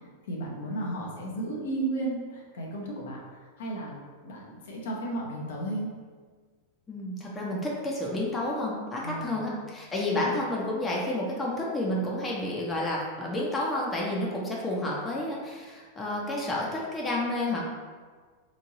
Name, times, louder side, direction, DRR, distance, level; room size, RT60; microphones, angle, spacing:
voice 1, 0.3-4.0 4.2-5.9 9.0-9.5 10.2-10.4, right 2 dB, 60° left, -3 dB, 0.7 m, -34 dB
voice 2, 6.9-17.6, left 1 dB, 15° left, -4 dB, 0.7 m, -30 dB
3.0 x 2.6 x 3.9 m, 1.5 s
figure-of-eight pair, 90°, 0 cm